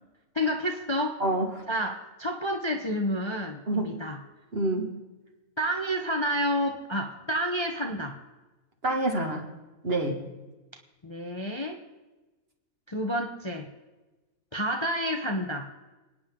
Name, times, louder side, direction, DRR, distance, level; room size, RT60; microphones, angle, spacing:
voice 1, 0.3-1.2 1.7-4.2 5.6-8.2 11.0-11.8 12.9-13.7 14.5-15.7, equal, 25° left, 2 dB, 0.9 m, -29 dB
voice 2, 1.2-1.6 3.7-4.0 4.5-4.9 8.8-9.5 9.8-10.2, right 2 dB, 45° right, 2 dB, 2.2 m, -27 dB
28.0 x 9.7 x 3.8 m, 1.2 s
omnidirectional pair, 1.5 m